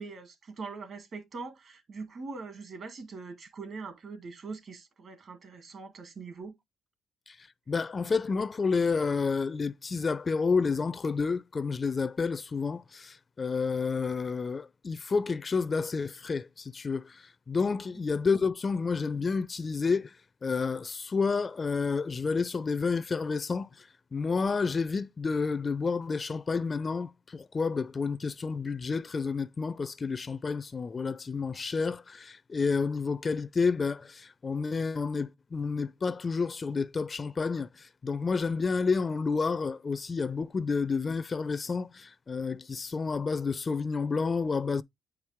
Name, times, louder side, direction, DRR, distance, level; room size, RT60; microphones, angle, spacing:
voice 1, 0.0-6.5, right 4 dB, 55° right, 2.0 m, -42 dB
voice 2, 7.3-20.2 20.4-44.8, left 4 dB, 35° left, 0.4 m, -30 dB
8.6 x 4.6 x 3.5 m
cardioid pair, 90°, 0 cm